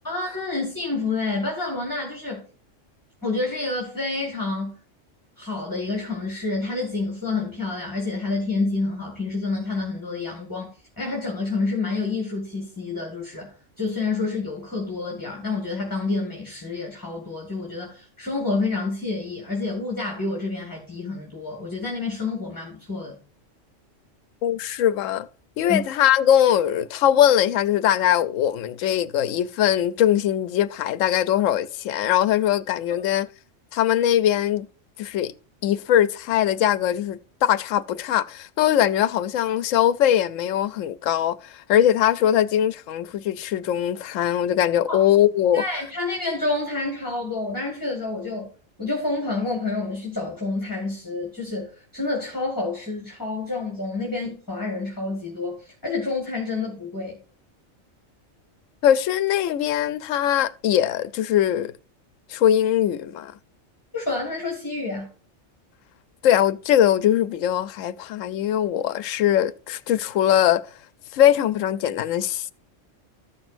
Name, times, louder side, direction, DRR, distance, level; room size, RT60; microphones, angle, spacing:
voice 1, 0.0-2.4 3.2-4.8 5.4-23.2 25.7-25.8 44.9-45.0 45.5-48.5 48.8-57.2 63.9-65.1, left 3 dB, 15° left, 1.9 m, -28 dB
voice 2, 24.4-25.3 25.6-33.3 33.7-34.7 35.0-35.3 35.6-45.6 58.8-61.7 62.3-63.3 66.2-70.6 71.1-72.5, left 11 dB, 85° left, 0.9 m, -21 dB
14.5 x 6.1 x 2.5 m
omnidirectional pair, 1.3 m